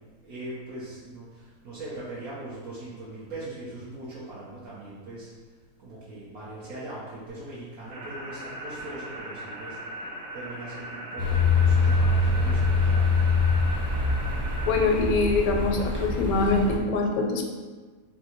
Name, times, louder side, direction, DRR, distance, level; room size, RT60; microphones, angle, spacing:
voice 1, 0.2-5.3 5.8-9.8 10.3-13.3, right 2 dB, 75° right, -9 dB, 1.4 m, -40 dB
sound 1, 7.9-14.8, right 1 dB, 55° right, 0.7 m, -39 dB
sound 2, 11.2-16.8, left 3 dB, 25° right, 0.7 m, -24 dB
voice 2, 14.7-17.4, left 3 dB, 75° left, 2 dB, 1.0 m, -24 dB
3.4 x 2.7 x 4.4 m, 1.4 s
omnidirectional pair, 1.6 m